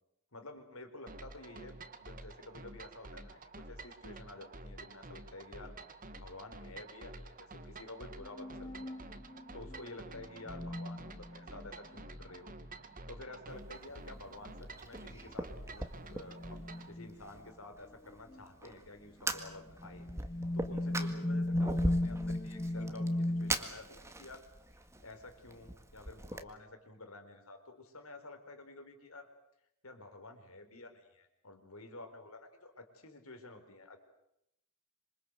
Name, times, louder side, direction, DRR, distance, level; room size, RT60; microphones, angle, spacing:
voice 1, 0.3-1.7 2.0-5.7 6.2-8.9 9.5-12.5 13.1-20.1 20.5-29.3 29.8-34.0, left 2 dB, 70° left, 7 dB, 4.3 m, -51 dB
sound 1, 1.1-16.9, right 2 dB, 40° right, 2.2 m, -50 dB
sound 2, 8.2-12.1 14.5-14.6 15.3-15.4 16.1-17.2 18.1-18.5 19.2-23.6, left 1 dB, 20° left, 1.1 m, -36 dB
Fire, 13.5-26.4, right 1 dB, 15° right, 1.9 m, -42 dB
26.5 x 24.0 x 8.1 m, 0.81 s
head